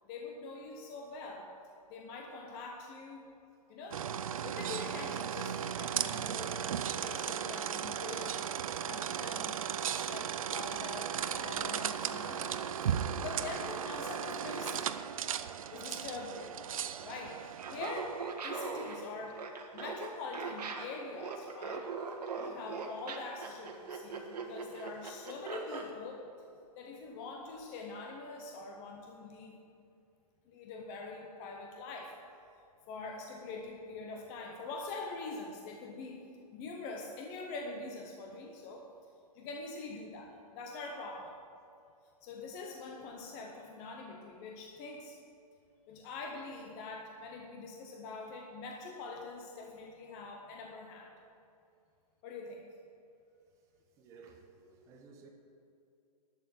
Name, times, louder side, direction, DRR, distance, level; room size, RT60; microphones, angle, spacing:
voice 1, 0.0-1.5 1.9-3.3 3.7-4.1 4.4-8.4 8.9-12.9 13.2-15.0 15.7-16.6 17.0-19.5 19.7-21.9 22.3-26.3 26.8-29.6 30.5-32.2 32.9-38.9 39.3-41.4 42.2-45.2 45.9-51.1 52.2-52.6, left 3 dB, 15° left, 0.6 m, -44 dB
sound 1, 3.9-18.3, right 8 dB, 60° right, 0.6 m, -36 dB
Laughter, 17.5-25.9, right 5 dB, 85° right, 1.8 m, -40 dB
voice 2, 54.0-55.3, right 4 dB, 15° right, 0.8 m, -55 dB
11.0 x 6.5 x 9.2 m
hypercardioid pair, 170°, 20 cm